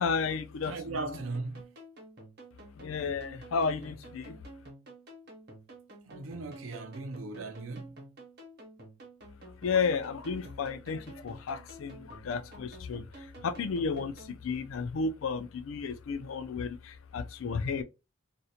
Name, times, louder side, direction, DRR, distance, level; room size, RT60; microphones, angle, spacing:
voice 1, 0.0-1.1 2.8-4.4 9.6-17.8, left 5 dB, 85° left, 0.4 m, -33 dB
voice 2, 0.6-1.7 6.0-8.0, right 3 dB, 90° right, 0.5 m, -38 dB
sound 1, 1.1-14.4, right 1 dB, 50° right, 0.8 m, -51 dB
2.4 x 2.1 x 2.7 m
head